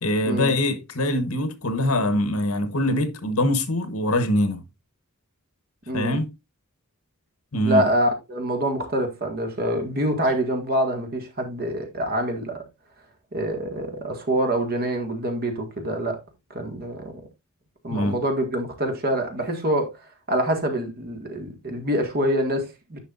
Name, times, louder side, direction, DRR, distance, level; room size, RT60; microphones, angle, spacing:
voice 1, 0.0-4.6 5.9-6.3 7.5-7.9 17.9-18.2, left 1 dB, 70° left, 1.2 m, -23 dB
voice 2, 5.9-6.2 7.6-12.6 13.3-16.2 16.5-17.2 17.8-19.9 20.3-23.0, right 1 dB, 45° right, 1.9 m, -25 dB
9.9 x 5.6 x 2.6 m
head